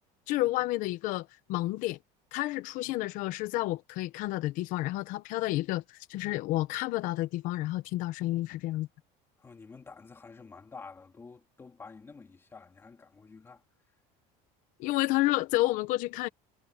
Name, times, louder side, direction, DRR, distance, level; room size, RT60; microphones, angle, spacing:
voice 1, 0.3-2.0 2.3-8.9 14.8-16.3, left 17 dB, 55° left, 1.0 m, -30 dB
voice 2, 9.4-13.6, left 4 dB, 15° left, 3.2 m, -49 dB
cardioid pair, 170°, 17 cm